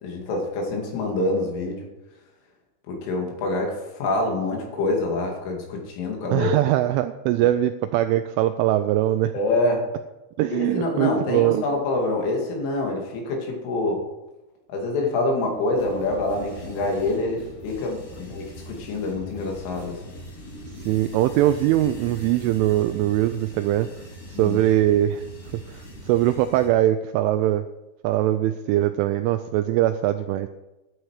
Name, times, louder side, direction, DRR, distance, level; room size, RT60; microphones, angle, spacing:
voice 1, 0.0-1.9 2.9-6.5 9.3-9.9 10.5-14.0 14.7-20.0 24.3-24.6, left 2 dB, 75° left, 1 dB, 4.8 m, -26 dB
voice 2, 6.3-9.3 10.4-11.6 20.8-23.9 24.3-25.2 25.7-27.7 28.0-30.5, right 13 dB, 85° right, 9 dB, 2.9 m, -22 dB
sound 1, 15.8-26.7, equal, 45° left, 3.7 m, -41 dB
12.5 x 9.3 x 4.8 m, 1.0 s
omnidirectional pair, 5.8 m